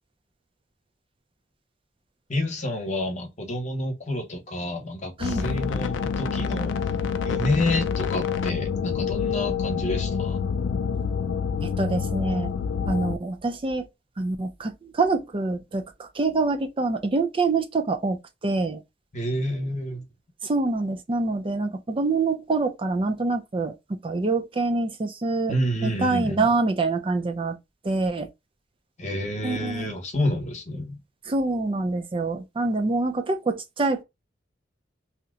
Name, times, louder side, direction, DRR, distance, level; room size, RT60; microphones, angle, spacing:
voice 1, 2.3-6.8 7.2-10.4 19.1-20.0 25.5-26.5 29.0-31.0, left 1 dB, 40° left, 0.9 m, -29 dB
sound 1, 5.2-13.2, left 6 dB, 85° left, 0.4 m, -27 dB
voice 2, 11.6-12.5 12.9-13.8 14.2-18.2 18.4-18.8 20.4-25.5 25.8-27.6 27.8-28.3 29.4-30.0 31.3-34.0, right 3 dB, 30° right, 0.4 m, -25 dB
2.8 x 2.1 x 3.6 m
head